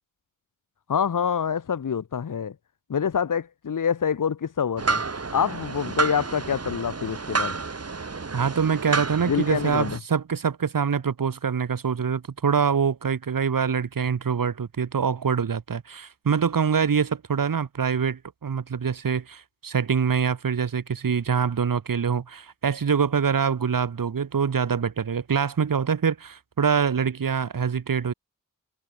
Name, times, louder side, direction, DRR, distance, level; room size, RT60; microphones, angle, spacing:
voice 1, 0.9-2.5 2.9-5.0 5.3-7.5 9.3-10.0, left 7 dB, 70° left, 1.5 m, -26 dB
sound 1, 4.8-10.0, right 4 dB, 45° right, 7.2 m, -30 dB
voice 2, 8.3-28.1, right 6 dB, 75° right, 2.6 m, -25 dB
wide cardioid pair, 115°, 33 cm